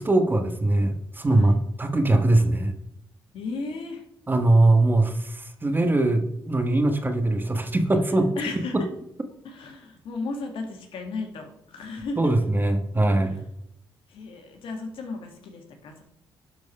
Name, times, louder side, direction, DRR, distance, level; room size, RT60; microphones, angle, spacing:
voice 1, 0.0-2.7 4.3-8.3 12.2-13.5, right 2 dB, 20° right, 7 dB, 1.3 m, -21 dB
voice 2, 3.3-4.0 8.4-8.9 9.4-12.3 13.0-13.1 14.1-16.0, left 3 dB, 80° left, 3 dB, 1.9 m, -35 dB
11.0 x 4.6 x 5.4 m, 0.78 s
cardioid pair, 85°, 9 cm